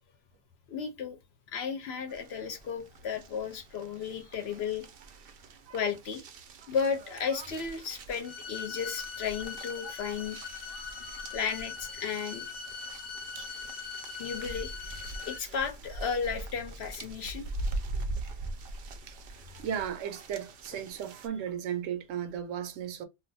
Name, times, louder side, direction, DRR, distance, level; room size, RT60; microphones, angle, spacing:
voice 1, 0.7-1.2 1.5-4.9 5.7-6.3 6.7-10.4 11.3-12.4 14.2-14.7 15.2-17.5, left 6 dB, 65° left, 0.8 m, -34 dB
sound 1, 2.1-21.3, right 2 dB, 60° right, 0.7 m, -42 dB
sound 2, 8.2-15.4, left 5 dB, 85° left, 1.0 m, -41 dB
voice 2, 19.6-23.0, right 9 dB, 80° right, 1.0 m, -35 dB
2.5 x 2.3 x 3.9 m
omnidirectional pair, 1.3 m